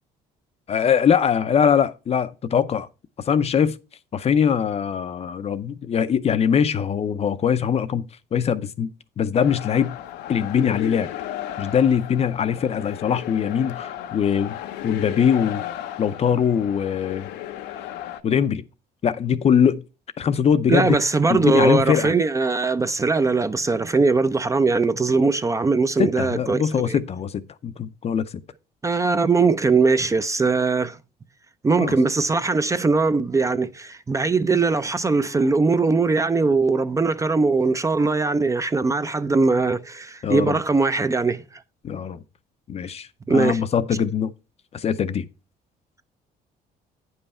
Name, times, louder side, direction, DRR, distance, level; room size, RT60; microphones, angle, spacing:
voice 1, 0.7-2.9 3.3-3.8 4.1-10.0 10.3-11.1 11.6-14.6 14.8-15.6 16.0-17.3 18.2-18.6 19.0-19.8 20.2-21.0 21.3-22.1 26.0-28.3 31.8-31.9 40.2-40.6 41.8-42.2 42.7-44.3 44.7-45.3, left 7 dB, 40° left, 0.5 m, -22 dB
sound 1, 9.3-18.2, left 12 dB, 85° left, 0.7 m, -35 dB
voice 2, 20.7-26.6 26.9-27.0 28.8-31.0 31.6-41.4 43.3-43.6, right 4 dB, 20° right, 0.5 m, -20 dB
9.1 x 5.5 x 4.2 m
cardioid pair, 110°, 17 cm